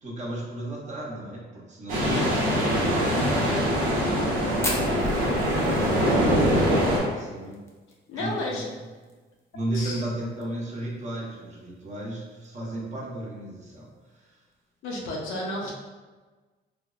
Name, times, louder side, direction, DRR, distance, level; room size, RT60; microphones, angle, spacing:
voice 1, 0.0-3.7 4.7-5.1 6.1-7.5 8.2-8.6 9.5-14.4, right 1 dB, 35° right, -4 dB, 0.8 m, -35 dB
sound 1, 1.9-7.0, equal, 90° right, 0.8 m, -23 dB
Fire, 4.6-9.1 9.4-9.5 9.7-9.8 10.2-10.6 11.2-11.3 12.3-12.5, left 1 dB, 15° left, 0.6 m, -36 dB
voice 2, 8.1-8.7 9.7-10.0 14.8-15.7, left 1 dB, 85° left, -2 dB, 0.6 m, -31 dB
3.3 x 2.0 x 2.4 m, 1.3 s
cardioid pair, 90°, 20 cm